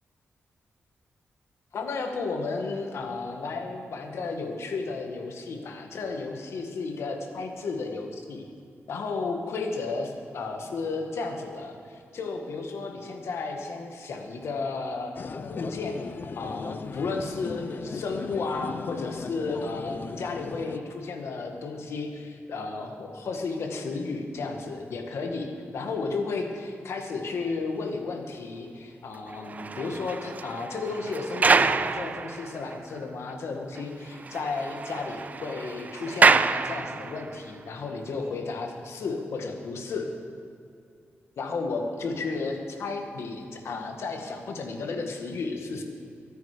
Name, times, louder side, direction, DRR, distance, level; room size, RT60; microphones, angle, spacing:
voice 1, 1.7-8.4 8.9-15.1 15.5-16.0 16.4-40.1 41.4-45.8, left 3 dB, 75° left, 3 dB, 1.9 m, -33 dB
sound 1, 15.2-20.8, left 5 dB, 50° left, 0.6 m, -37 dB
sound 2, 29.3-33.0 33.3-33.4 33.7-33.8 34.1-37.4 38.1-38.3, right 4 dB, 35° right, 0.4 m, -26 dB
23.5 x 9.2 x 5.1 m, 2.5 s
wide cardioid pair, 105°, 5 cm